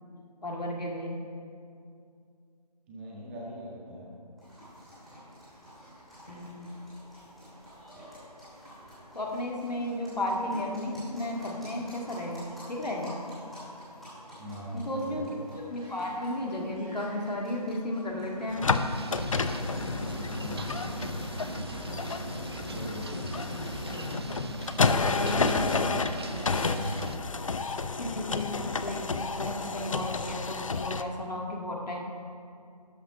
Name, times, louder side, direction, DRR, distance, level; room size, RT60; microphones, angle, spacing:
voice 1, 0.4-1.2 6.3-6.7 9.1-13.2 14.7-15.3 15.7-18.6 25.2-25.5 28.0-32.0, left 1 dB, 75° left, -1 dB, 1.9 m, -34 dB
voice 2, 2.9-4.1 14.4-15.4 20.3-20.8 22.7-23.1 24.9-25.8 26.5-26.9, equal, 20° right, -5 dB, 1.6 m, -40 dB
sound 1, 4.4-20.9, equal, ahead, 2.7 m, -49 dB
sound 2, 18.5-31.0, left 4 dB, 55° left, 0.5 m, -30 dB
sound 3, 18.7-27.2, right 4 dB, 40° right, 0.4 m, -40 dB
12.0 x 5.7 x 5.2 m, 2.4 s
figure-of-eight pair, 155°, 21 cm